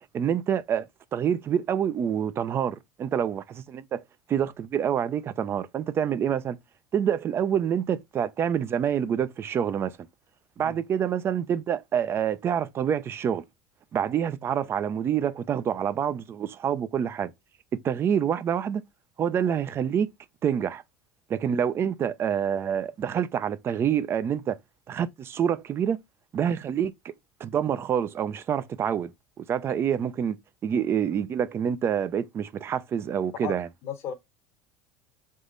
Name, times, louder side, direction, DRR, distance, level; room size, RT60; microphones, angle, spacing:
voice 1, 0.1-0.9 1.1-4.0 4.3-6.6 6.9-9.9 10.6-13.4 13.9-17.3 17.8-18.8 19.2-20.1 20.4-20.8 21.3-24.6 24.9-26.0 26.3-26.9 27.4-29.1 29.4-30.4 30.6-33.7, right 8 dB, 35° right, 0.5 m, -27 dB
voice 2, 33.8-34.1, left 8 dB, 55° left, 0.9 m, -34 dB
3.7 x 3.0 x 3.8 m
supercardioid pair, 105°, 7 cm